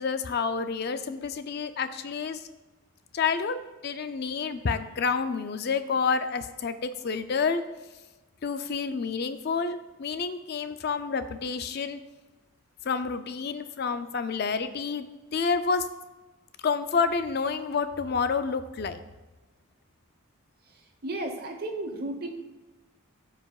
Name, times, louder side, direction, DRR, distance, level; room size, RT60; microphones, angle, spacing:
voice 1, 0.0-2.5 3.1-7.6 8.4-12.0 12.8-15.1 15.3-15.9 16.6-19.0, left 5 dB, 45° left, 10 dB, 0.4 m, -29 dB
voice 2, 21.0-22.3, right 1 dB, 45° right, 4 dB, 1.0 m, -33 dB
14.0 x 5.0 x 2.4 m, 1.2 s
head